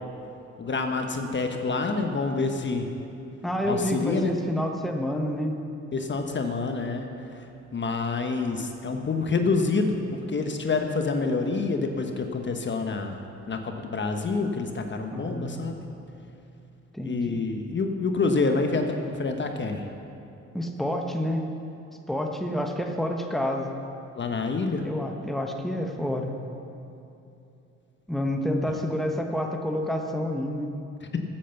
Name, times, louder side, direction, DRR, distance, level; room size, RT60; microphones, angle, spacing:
voice 1, 0.6-2.9 3.6-4.3 5.9-7.1 7.4-7.5 7.7-13.2 13.5-15.8 17.0-19.8 24.1-24.8, left 3 dB, 40° left, 5 dB, 1.2 m, -27 dB
voice 2, 3.4-5.6 15.1-15.5 16.9-17.5 20.5-21.5 22.1-23.7 24.8-26.3 28.1-30.7, equal, ahead, 3 dB, 1.2 m, -28 dB
13.5 x 8.8 x 7.1 m, 2.8 s
cardioid pair, 90°, 30 cm